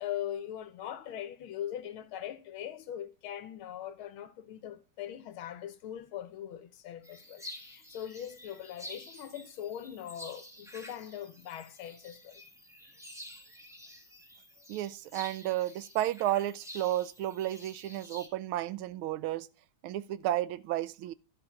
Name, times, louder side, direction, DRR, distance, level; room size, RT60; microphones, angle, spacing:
voice 1, 0.0-12.4, left 10 dB, 80° left, 1.8 m, -41 dB
sound 1, 7.0-18.3, equal, ahead, 1.3 m, -50 dB
voice 2, 14.7-19.5 19.8-21.1, right 13 dB, 90° right, 1.5 m, -32 dB
11.5 x 5.8 x 4.6 m
omnidirectional pair, 2.2 m